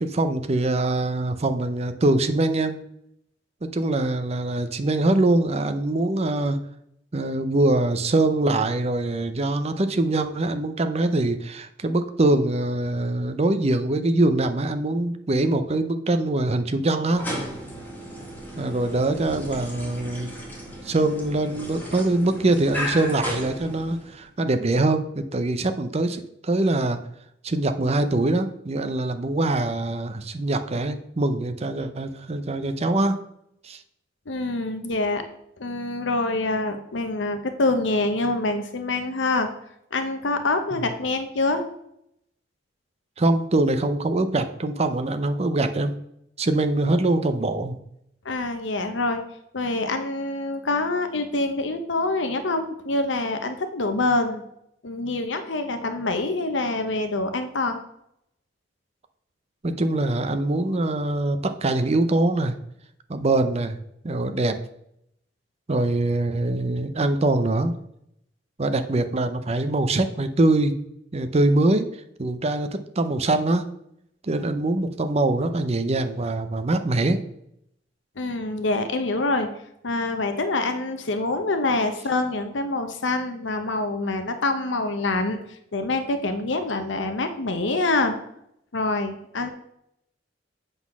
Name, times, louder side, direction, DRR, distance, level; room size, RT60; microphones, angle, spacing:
voice 1, 0.0-2.8 3.6-6.6 7.1-17.3 18.6-20.3 20.8-27.0 27.4-33.2 33.6-33.8 40.7-40.8 43.2-46.0 46.4-47.8 59.6-62.6 63.1-63.8 64.0-64.6 65.7-67.7 68.6-70.7 71.1-71.9 72.2-73.7 74.2-77.2, right 2 dB, 35° right, 9 dB, 0.6 m, -23 dB
sound 1, 17.0-24.2, equal, 10° left, 1.7 m, -35 dB
voice 2, 34.3-35.2 35.6-39.5 39.9-41.6 48.2-49.2 49.5-54.4 54.8-57.8 78.2-79.5 79.8-85.4 85.7-88.1 88.7-89.5, left 2 dB, 80° left, 7 dB, 0.9 m, -25 dB
7.7 x 4.1 x 6.0 m, 0.76 s
head